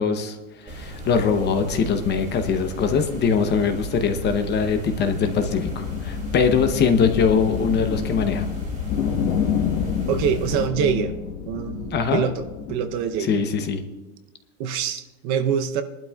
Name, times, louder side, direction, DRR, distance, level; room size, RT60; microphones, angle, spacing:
voice 1, 0.0-8.5 11.9-12.2 13.2-13.8, left 6 dB, 25° left, 7 dB, 0.7 m, -22 dB
sound 1, 0.7-10.7, right 1 dB, 15° right, 2.3 m, -35 dB
sound 2, 4.8-13.1, left 7 dB, 65° left, 1.5 m, -28 dB
voice 2, 10.1-11.1 11.5-12.4 12.7-13.4 14.6-15.8, right 8 dB, 40° right, 9 dB, 0.7 m, -25 dB
21.5 x 12.0 x 2.3 m, 1.1 s
supercardioid pair, 150°, 45 cm